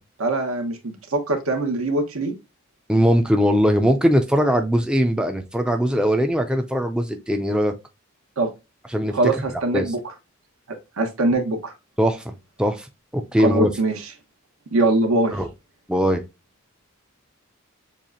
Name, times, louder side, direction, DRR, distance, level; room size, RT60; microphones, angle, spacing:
voice 1, 0.2-2.3 8.4-8.5 9.1-10.0 11.0-11.7 13.4-14.1 14.7-15.3, right 2 dB, 75° right, 1.3 m, -22 dB
voice 2, 2.9-7.7 8.9-9.2 9.7-9.9 12.0-12.9 13.1-13.7 15.3-15.5 15.9-16.2, equal, 5° right, 0.4 m, -20 dB
7.3 x 2.4 x 2.7 m
head